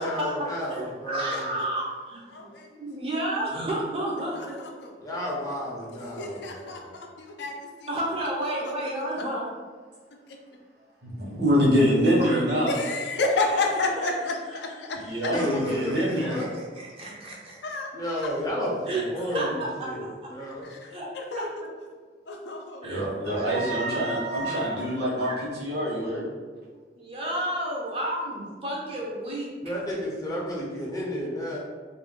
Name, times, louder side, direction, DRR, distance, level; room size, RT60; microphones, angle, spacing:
voice 1, 0.0-1.5 5.0-6.9 15.3-16.5 17.9-20.7 29.6-31.6, equal, 20° left, -4 dB, 0.5 m, -32 dB
voice 2, 0.7-4.6 7.9-9.4 10.8-10.9 12.2-12.4 13.4-13.6 14.0-14.4 15.3-17.8 18.9-19.5 20.9-21.1 21.4-21.5 22.8-25.4 27.0-29.7, right 1 dB, 30° right, -4 dB, 0.4 m, -32 dB
voice 3, 2.3-2.8 4.8-4.9 6.2-7.9 8.6-8.7 9.2-9.3 10.3-10.4 12.7-15.3 16.4-16.5 17.6-17.9 20.7-20.8 21.1-21.5 22.3-23.5, left 3 dB, 80° left, 2 dB, 0.4 m, -30 dB
voice 4, 11.0-12.8 14.9-16.4 22.8-26.3, equal, 70° right, -6 dB, 1.0 m, -25 dB
2.4 x 2.1 x 3.5 m, 1.5 s
head